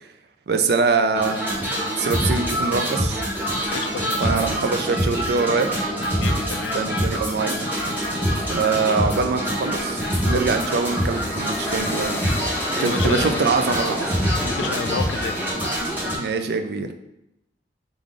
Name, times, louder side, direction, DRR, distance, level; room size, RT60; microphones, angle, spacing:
voice 1, 0.5-3.2 4.2-5.7 6.7-7.6 8.5-12.2 12.8-14.1 16.2-16.9, right 4 dB, 65° right, 7 dB, 0.4 m, -24 dB
sound 1, 1.1-16.2, equal, 10° right, 0.9 m, -25 dB
voice 2, 3.7-4.3 6.0-6.8 12.7-13.5 14.4-15.4, left 7 dB, 85° left, 10 dB, 0.3 m, -31 dB
sound 2, 6.7-15.5, equal, 15° left, 0.5 m, -34 dB
4.7 x 2.5 x 3.7 m, 0.87 s
head